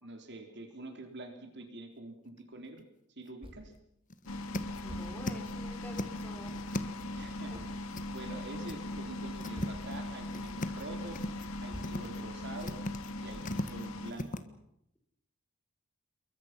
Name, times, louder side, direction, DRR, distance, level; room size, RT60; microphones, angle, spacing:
voice 1, 0.0-3.7 7.1-7.6 8.1-11.2 11.6-12.8 13.2-14.4, right 2 dB, 55° right, 5 dB, 3.5 m, -46 dB
sound 1, 2.4-2.8 3.2-3.3 3.7-3.8 4.1-5.5 5.8-7.2 7.9-8.4 8.7-8.8 9.2-10.0 10.3-10.8 11.1-11.5 11.8-12.2 12.6-14.4, left 1 dB, 40° left, 1.6 m, -39 dB
sound 2, 3.4-3.8 4.3-4.4 4.9-5.6 7.5-8.0 9.5-10.2 10.7-10.8 11.7-12.5, equal, 25° right, 4.2 m, -48 dB
sound 3, 4.3-14.1, left 1 dB, 75° left, 2.3 m, -40 dB
voice 2, 4.8-6.6 7.5-7.6 10.0-10.1, left 1 dB, 10° left, 4 dB, 5.1 m, -48 dB
28.5 x 23.0 x 5.9 m, 0.78 s
head